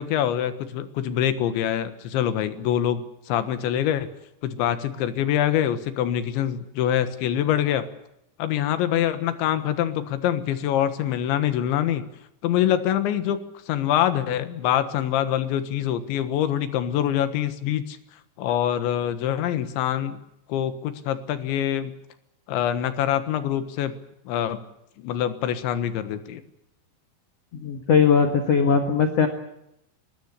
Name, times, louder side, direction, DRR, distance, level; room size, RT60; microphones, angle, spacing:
voice 1, 0.0-4.1 4.4-7.9 8.4-12.0 12.4-13.4 13.7-18.0 18.4-20.2 20.5-21.9 22.5-23.9 24.3-24.6 25.0-26.4, left 10 dB, 90° left, 11 dB, 3.7 m, -25 dB
voice 2, 27.5-29.3, left 6 dB, 50° left, 6 dB, 2.0 m, -19 dB
23.0 x 20.5 x 8.3 m, 0.80 s
omnidirectional pair, 5.2 m